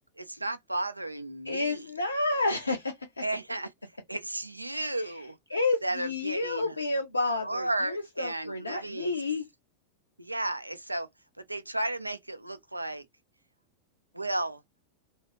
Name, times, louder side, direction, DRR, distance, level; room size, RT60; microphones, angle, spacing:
voice 1, 0.2-1.9 3.2-3.7 4.1-5.4 5.8-6.7 7.4-9.2 10.2-11.1 11.5-13.0 14.1-14.6, right 1 dB, 85° right, 0.4 m, -33 dB
voice 2, 1.5-2.9 5.0-5.1 5.5-9.4, left 2 dB, 80° left, 0.5 m, -30 dB
2.8 x 2.4 x 2.9 m
figure-of-eight pair, 90°, 0 cm